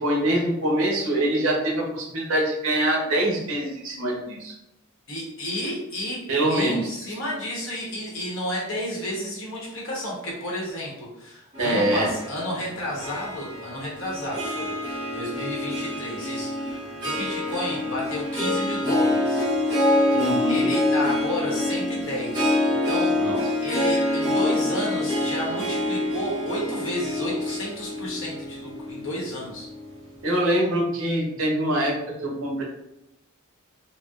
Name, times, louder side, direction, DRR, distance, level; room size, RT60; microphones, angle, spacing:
voice 1, 0.0-4.5 6.3-6.8 11.6-12.1 20.1-20.6 23.2-23.4 30.2-32.6, right 1 dB, 70° right, -1 dB, 0.9 m, -24 dB
voice 2, 5.1-14.7 15.1-19.5 20.5-23.2 23.6-29.7, left 1 dB, 60° left, -4 dB, 1.0 m, -32 dB
Harp, 11.5-30.0, left 1 dB, 20° right, 1.2 m, -26 dB
4.1 x 2.1 x 2.4 m, 0.84 s
head